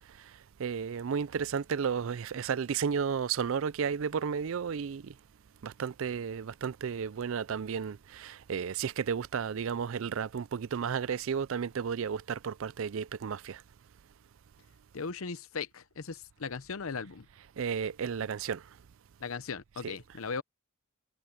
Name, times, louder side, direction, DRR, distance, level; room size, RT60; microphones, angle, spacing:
voice 1, 0.6-5.1 5.6-13.6 17.6-18.6, right 6 dB, 70° right, 0.4 m, -33 dB
sound 1, 0.8-11.5, right 1 dB, 10° right, 7.6 m, -76 dB
voice 2, 14.9-17.3 19.2-20.4, left 5 dB, 75° left, 0.7 m, -38 dB
head